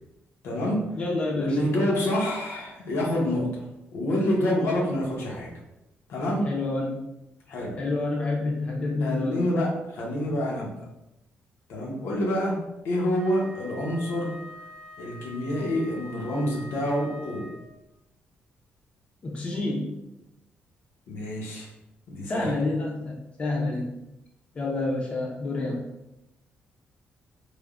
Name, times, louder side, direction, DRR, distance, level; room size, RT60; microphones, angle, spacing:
voice 1, 0.4-0.9 1.3-3.6 3.9-5.5 6.1-6.5 7.5-7.8 9.0-10.9 11.7-14.3 15.0-17.5 21.1-21.7 22.1-22.5, left 1 dB, 85° left, -2 dB, 0.7 m, -27 dB
voice 2, 1.0-1.6 6.4-7.0 7.8-9.4 19.2-19.9 22.3-23.9 24.6-25.8, left 2 dB, 30° left, -1 dB, 0.4 m, -28 dB
Wind instrument woodwind instrument, 13.1-17.8, left 1 dB, 75° right, 0.6 m, -45 dB
3.2 x 2.0 x 2.3 m, 0.90 s
cardioid pair, 165°, 4 cm